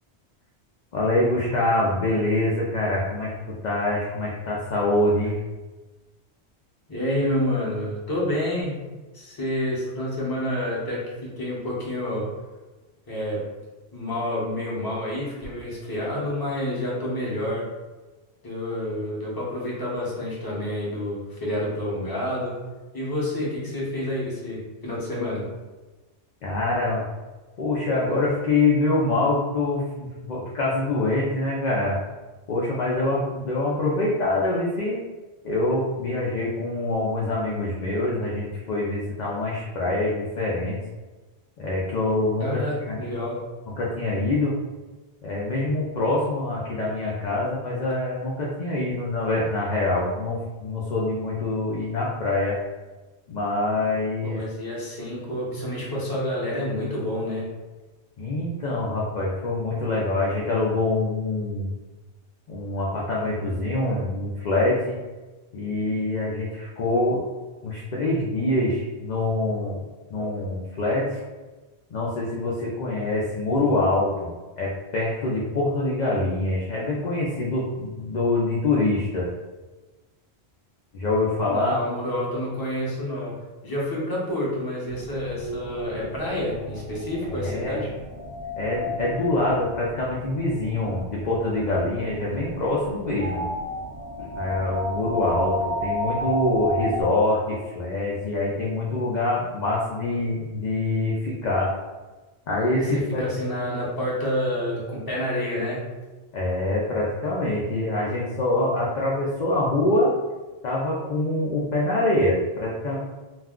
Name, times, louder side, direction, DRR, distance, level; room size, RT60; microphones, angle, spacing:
voice 1, 0.9-3.3 3.6-5.4 26.4-27.0 27.6-32.0 32.5-35.0 35.4-40.8 41.6-43.0 43.8-44.5 45.2-52.6 53.3-54.4 58.2-61.7 62.5-65.0 65.5-67.2 67.6-69.8 70.1-71.2 71.9-74.3 74.6-79.3 80.9-81.8 87.3-87.9 88.6-93.5 94.2-101.7 102.5-103.2 106.3-110.1 110.6-113.0, left 2 dB, 55° left, -4 dB, 0.5 m, -25 dB
voice 2, 6.9-8.8 9.1-12.3 13.1-13.4 13.9-17.7 18.4-22.5 22.9-25.5 42.4-43.4 54.2-57.5 81.5-83.4 83.6-87.9 102.9-105.8, left 1 dB, 25° left, -5 dB, 0.7 m, -28 dB
sound 1, 84.9-97.0, left 1 dB, 55° right, 0.4 m, -33 dB
2.4 x 2.2 x 3.5 m, 1.2 s
omnidirectional pair, 1.1 m